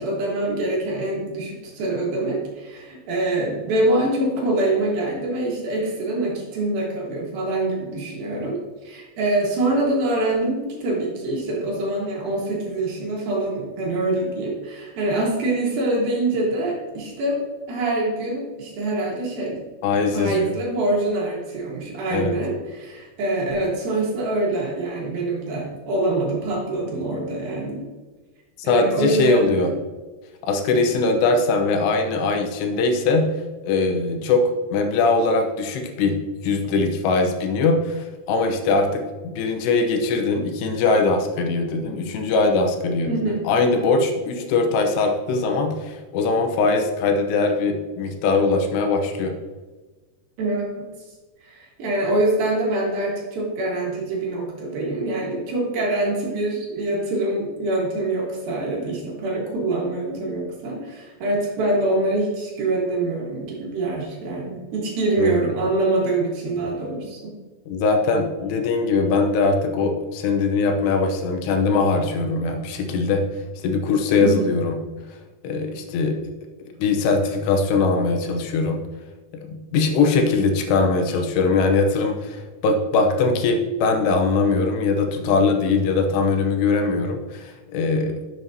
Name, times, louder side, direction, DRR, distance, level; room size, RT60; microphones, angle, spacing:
voice 1, 0.0-17.4 17.7-19.6 20.1-27.8 28.6-29.8 43.1-43.4 50.4-50.8 51.4-67.3 74.2-74.5, right 2 dB, 65° right, -2 dB, 3.1 m, -25 dB
voice 2, 19.8-20.5 22.1-22.4 28.7-29.7 30.4-33.3 33.6-34.4 34.7-36.2 36.4-43.1 43.5-49.3 65.2-65.4 67.7-73.2 73.6-74.8 75.4-76.2 76.6-78.8 79.3-88.1, left 3 dB, 80° left, 5 dB, 2.9 m, -21 dB
10.5 x 7.5 x 2.7 m, 1.2 s
omnidirectional pair, 4.9 m